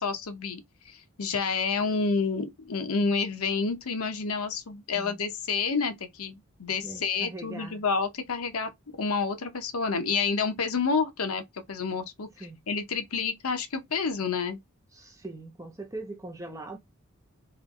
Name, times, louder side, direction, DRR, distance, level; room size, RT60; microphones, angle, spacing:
voice 1, 0.0-6.3 6.6-8.7 9.0-11.4 11.7-14.6, left 5 dB, 85° left, 0.9 m, -29 dB
voice 2, 6.8-7.8 12.4-12.6 14.9-16.8, right 2 dB, 15° right, 0.6 m, -41 dB
3.2 x 3.0 x 3.7 m
head